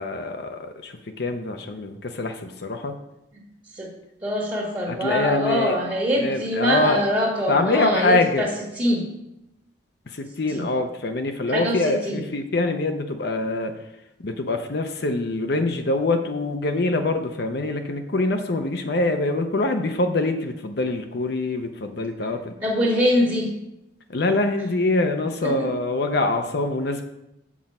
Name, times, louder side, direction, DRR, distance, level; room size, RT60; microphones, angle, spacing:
voice 1, 0.0-2.9 4.9-5.7 6.2-7.0 7.5-8.5 10.1-13.7 14.2-22.5 24.1-27.0, left 2 dB, 55° left, 5 dB, 0.7 m, -24 dB
voice 2, 4.2-8.5 8.7-9.1 10.5-10.6 11.5-12.2 22.6-23.5 25.4-25.7, equal, 25° right, -3 dB, 1.4 m, -23 dB
7.3 x 6.2 x 5.3 m, 0.88 s
head